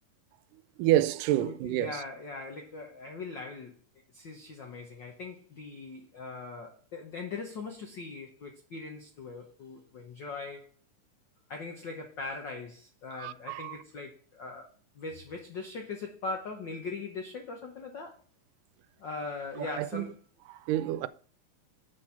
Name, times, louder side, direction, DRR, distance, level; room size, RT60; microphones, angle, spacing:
voice 1, 0.8-2.0 13.1-13.8 19.6-20.1 20.5-21.1, right 13 dB, 85° right, 2.1 m, -29 dB
voice 2, 1.4-3.8 4.1-10.7 11.5-14.7 14.9-18.2 19.0-20.1, left 3 dB, 85° left, 1.0 m, -40 dB
7.0 x 6.3 x 5.7 m
omnidirectional pair, 3.7 m